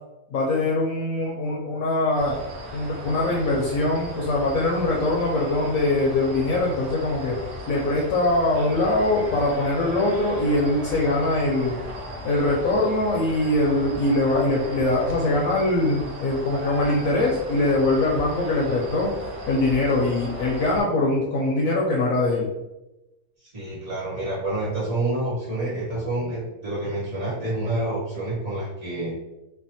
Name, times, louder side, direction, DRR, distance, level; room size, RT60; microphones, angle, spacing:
voice 1, 0.3-2.4 2.7-7.4 7.7-11.8 12.2-19.1 19.5-22.5, left 2 dB, 70° left, -3 dB, 0.9 m, -22 dB
sound 1, 2.2-20.8, left 1 dB, 70° right, 1.1 m, -36 dB
voice 2, 23.4-29.1, right 2 dB, 50° right, -7 dB, 1.6 m, -28 dB
3.4 x 2.1 x 2.6 m, 0.97 s
omnidirectional pair, 1.7 m